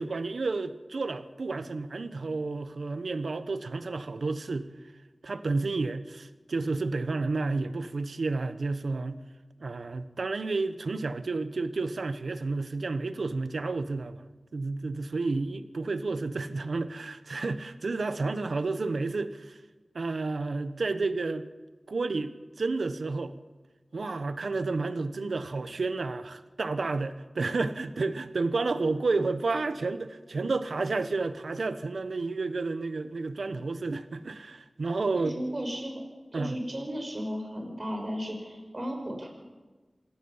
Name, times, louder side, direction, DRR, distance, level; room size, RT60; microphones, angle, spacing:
voice 1, 0.0-4.7 5.2-9.2 9.6-14.2 14.5-19.6 19.9-21.5 21.9-23.3 23.9-35.4 36.3-36.6, right 3 dB, 90° right, 11 dB, 1.0 m, -31 dB
voice 2, 35.1-36.0 36.3-39.3, equal, 40° right, 2 dB, 5.9 m, -35 dB
26.5 x 17.5 x 5.6 m, 1.3 s
wide cardioid pair, 60°, 0 cm